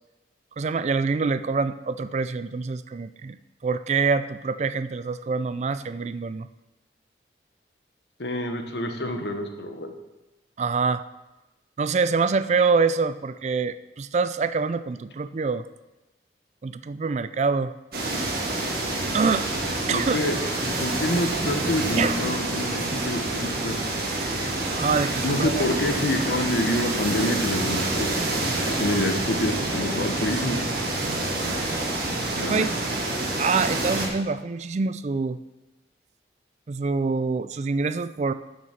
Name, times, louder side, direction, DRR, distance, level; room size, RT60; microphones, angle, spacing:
voice 1, 0.6-3.4 3.6-6.5 10.6-11.0 11.8-15.6 16.6-17.7 19.1-19.5 19.9-20.2 22.0-22.2 24.8-25.6 32.3-32.7 33.4-35.4 36.7-38.3, right 4 dB, 40° right, 13 dB, 0.3 m, -25 dB
voice 2, 8.2-9.9 19.9-20.4 20.6-23.9 25.2-30.6 32.4-32.7, left 1 dB, 70° left, 6 dB, 1.2 m, -27 dB
sound 1, 17.9-34.1, right 2 dB, 55° right, 1.9 m, -27 dB
9.2 x 7.0 x 5.8 m, 1.0 s
head